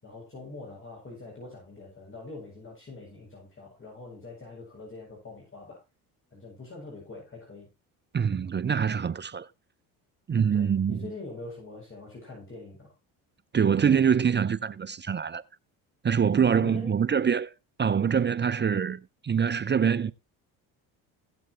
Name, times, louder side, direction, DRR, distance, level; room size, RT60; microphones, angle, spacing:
voice 1, 0.0-5.8 6.3-7.7 10.5-12.9 16.6-17.0, left 3 dB, 25° left, 7.5 m, -44 dB
voice 2, 8.1-9.5 10.3-11.0 13.5-15.4 16.0-17.5 17.8-20.1, right 7 dB, 25° right, 0.6 m, -24 dB
17.0 x 7.9 x 3.1 m
hypercardioid pair, 65°, 44 cm